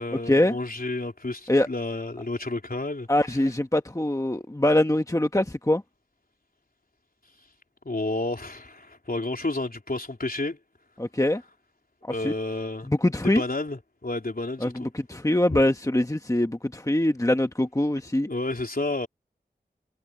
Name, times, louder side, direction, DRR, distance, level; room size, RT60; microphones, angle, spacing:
voice 1, 0.0-3.1 7.9-10.6 12.1-12.9 13.2-14.9 15.5-15.6 18.3-19.1, left 2 dB, 60° left, 3.7 m, -31 dB
voice 2, 3.1-5.8 11.0-11.4 12.0-12.3 12.8-13.4 14.6-18.3, left 1 dB, 20° left, 1.1 m, -23 dB
wide cardioid pair, 50°, 17 cm